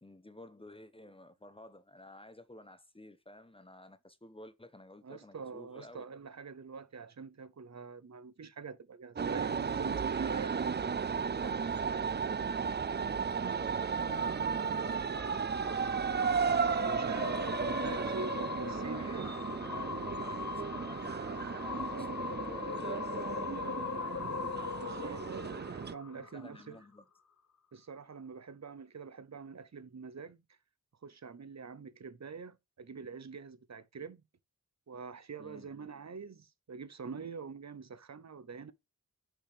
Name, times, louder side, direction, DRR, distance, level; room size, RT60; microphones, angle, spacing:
voice 1, 0.0-6.1 12.9-15.4 18.9-23.9 26.1-27.0 35.4-35.7, left 1 dB, 15° left, 1.0 m, -53 dB
voice 2, 5.0-12.0 16.7-19.3 24.7-26.8 27.7-30.4 31.0-34.2 34.9-38.7, right 5 dB, 55° right, 0.8 m, -45 dB
sound 1, 9.2-25.9, right 6 dB, 30° right, 0.4 m, -34 dB
sound 2, 14.2-26.7, left 6 dB, 55° left, 1.1 m, -41 dB
6.4 x 6.0 x 5.0 m
wide cardioid pair, 95°, 33 cm